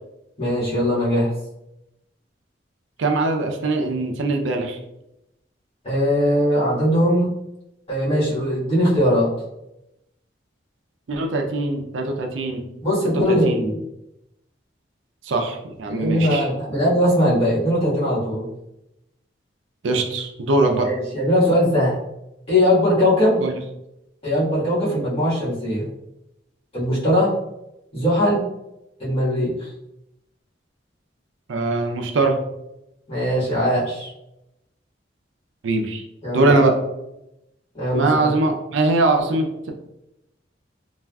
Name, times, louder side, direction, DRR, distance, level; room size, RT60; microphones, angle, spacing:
voice 1, 0.4-1.3 5.8-7.3 7.9-9.3 12.8-13.8 15.9-18.5 20.8-22.0 22.5-23.4 24.2-25.9 26.7-27.3 27.9-28.4 29.0-29.7 33.1-34.1 36.2-36.5 37.7-38.3, equal, 30° left, -10 dB, 1.5 m, -20 dB
voice 2, 3.0-4.8 11.1-12.6 13.1-13.6 15.2-16.5 19.8-20.9 23.4-23.5 31.5-32.4 35.6-36.0 36.3-36.7 37.9-39.7, right 2 dB, 80° right, 3 dB, 0.4 m, -21 dB
3.3 x 2.4 x 2.3 m, 0.87 s
head